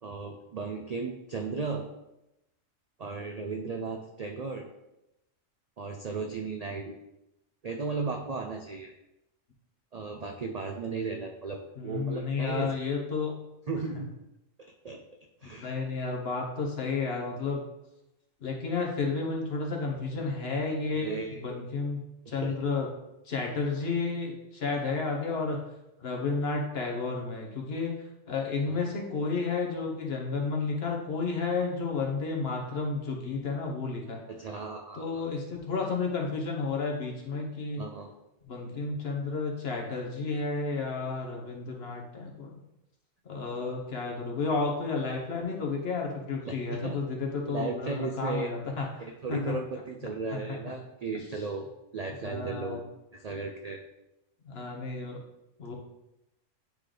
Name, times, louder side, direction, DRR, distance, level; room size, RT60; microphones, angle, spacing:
voice 1, 0.0-1.8 3.0-4.7 5.8-7.0 7.6-8.9 9.9-12.7 13.7-14.1 14.8-15.0 15.4-15.7 20.9-21.4 22.3-22.6 28.7-28.8 34.3-35.2 37.7-38.1 46.4-47.0 47.5-48.5 49.0-51.7 51.9-53.8, right 4 dB, 60° right, 3 dB, 0.4 m, -35 dB
voice 2, 11.8-13.3 13.9-14.0 15.4-17.6 18.4-22.0 22.3-22.9 23.3-25.6 26.0-27.9 28.3-34.2 34.9-37.8 38.5-42.6 43.2-49.0 49.3-49.5 50.3-50.7 52.2-52.8 54.5-55.2 55.6-55.7, left 4 dB, 50° left, 0 dB, 1.3 m, -32 dB
8.8 x 3.3 x 3.8 m, 0.89 s
omnidirectional pair, 1.4 m